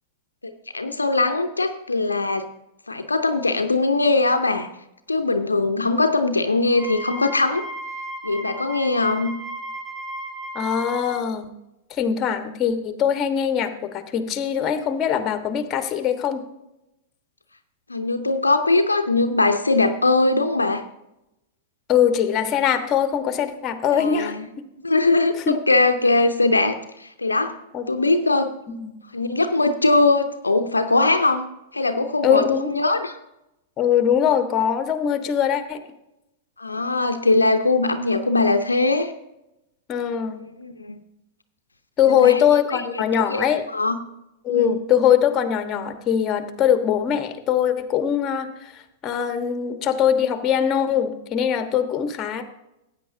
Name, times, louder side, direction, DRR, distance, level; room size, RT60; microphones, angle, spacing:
voice 1, 0.4-2.5 2.9-4.7 5.1-7.6 8.2-9.3 17.9-20.8 23.9-24.5 24.8-27.6 27.9-28.5 29.1-31.5 31.7-33.2 36.6-39.1 40.3-41.0 42.0-42.4 43.1-44.0 44.5-44.8, left 3 dB, 90° left, 8 dB, 0.7 m, -21 dB
Wind instrument woodwind instrument, 6.7-11.2, right 2 dB, 10° right, 1.7 m, -35 dB
voice 2, 10.5-11.4 11.9-16.4 21.9-24.7 25.5-25.6 27.7-27.8 28.7-28.9 32.2-32.7 33.8-35.8 39.9-40.4 42.0-43.7 44.4-52.4, left 9 dB, 30° left, 8 dB, 1.3 m, -22 dB
15.0 x 9.0 x 2.7 m, 0.88 s
figure-of-eight pair, 100°, 0 cm